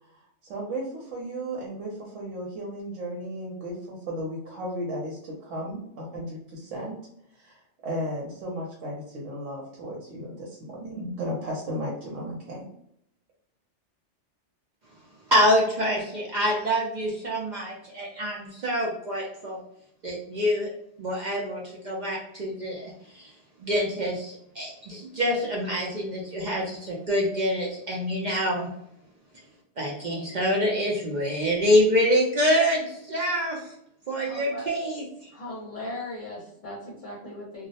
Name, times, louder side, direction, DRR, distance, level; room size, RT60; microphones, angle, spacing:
voice 1, 0.4-6.9 7.3-12.6, equal, 80° right, -3 dB, 1.0 m, -35 dB
voice 2, 15.3-19.6 20.0-20.7 21.0-23.3 23.6-28.7 29.8-33.7 34.1-35.3, equal, 55° right, -3 dB, 0.5 m, -26 dB
voice 3, 34.2-34.6 35.3-37.7, left 1 dB, 50° left, -5 dB, 0.8 m, -38 dB
2.3 x 2.0 x 2.7 m, 0.74 s
omnidirectional pair, 1.2 m